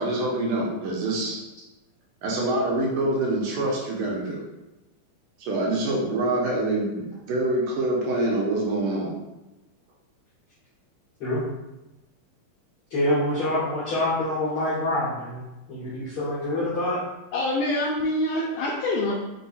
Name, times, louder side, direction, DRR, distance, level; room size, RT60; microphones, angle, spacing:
voice 1, 0.0-1.4 2.2-4.4 5.4-9.1, right 2 dB, 75° right, -3 dB, 2.2 m, -25 dB
voice 2, 12.9-15.4 15.7-17.0, left 1 dB, 65° left, -11 dB, 1.4 m, -26 dB
voice 3, 17.3-19.1, left 1 dB, 80° left, -3 dB, 1.8 m, -25 dB
5.5 x 2.2 x 4.1 m, 0.99 s
omnidirectional pair, 4.1 m